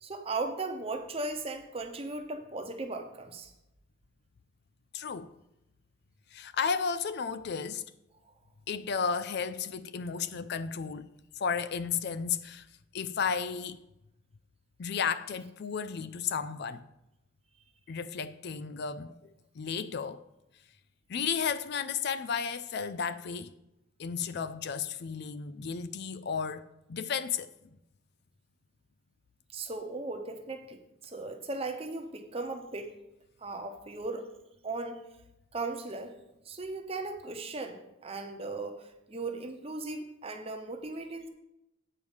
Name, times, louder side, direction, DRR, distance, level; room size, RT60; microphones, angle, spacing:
voice 1, 0.0-3.5 29.5-33.0 33.4-34.3 34.6-35.0 35.5-36.1 36.4-41.3, right 3 dB, 30° right, 0.9 m, -37 dB
voice 2, 4.9-5.3 6.3-7.8 8.7-11.1 11.3-12.7 12.9-13.8 14.8-16.8 17.9-20.2 21.1-23.5 24.0-27.5, left 6 dB, 55° left, 0.4 m, -33 dB
8.8 x 4.7 x 7.2 m
head